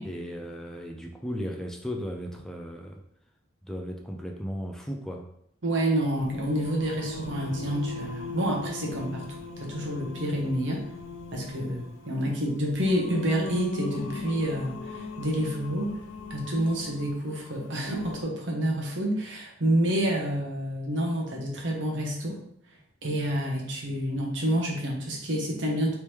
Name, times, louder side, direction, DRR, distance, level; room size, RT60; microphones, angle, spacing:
voice 1, 0.0-3.0 3.6-5.3, equal, 5° left, 1 dB, 0.3 m, -36 dB
voice 2, 5.6-9.3 9.6-10.8 11.3-15.9 16.3-22.4 23.0-25.9, right 1 dB, 65° right, -1 dB, 0.9 m, -28 dB
Singing, 6.1-18.2, left 2 dB, 75° left, 0.4 m, -38 dB
3.4 x 3.0 x 3.1 m, 0.71 s
head